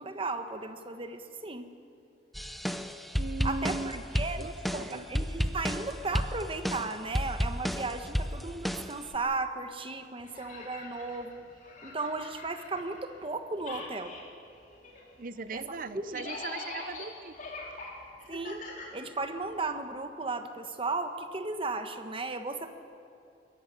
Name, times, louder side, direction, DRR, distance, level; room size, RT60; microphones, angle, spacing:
voice 1, 0.0-1.7 3.4-11.4 11.8-14.1 15.5-15.6 15.9-16.3 18.3-18.6 18.9-22.7, right 3 dB, 30° right, 8 dB, 1.3 m, -35 dB
sound 1, 2.3-9.2, equal, ahead, 0.6 m, -32 dB
voice 2, 3.2-4.0 4.4-5.1 15.2-17.4, right 3 dB, 50° right, 14 dB, 0.7 m, -39 dB
sound 2, 10.2-13.3 13.6-19.6, left 3 dB, 45° left, 3.7 m, -44 dB
22.0 x 14.5 x 9.9 m, 2.5 s
head